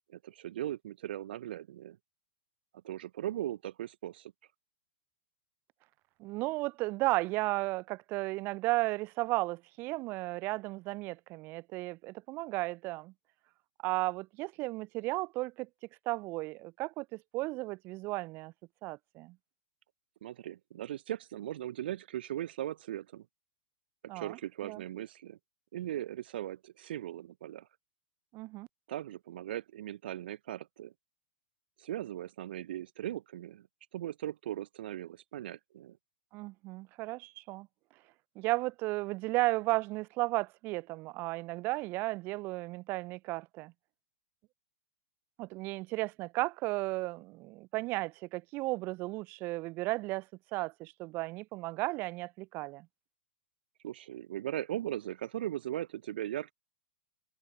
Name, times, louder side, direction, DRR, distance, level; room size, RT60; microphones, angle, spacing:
voice 1, 0.1-2.0 2.8-4.3 20.2-23.3 24.1-25.4 25.7-27.7 28.9-30.9 31.8-33.7 33.9-36.0 53.8-56.5, right 12 dB, 55° right, 0.9 m, -38 dB
voice 2, 6.2-13.1 13.8-15.7 16.1-18.5 18.8-19.4 24.1-24.8 28.3-28.7 36.3-37.7 38.4-43.7 45.4-50.3 50.5-52.9, right 21 dB, 35° right, 0.5 m, -34 dB
figure-of-eight pair, 105°, 6 cm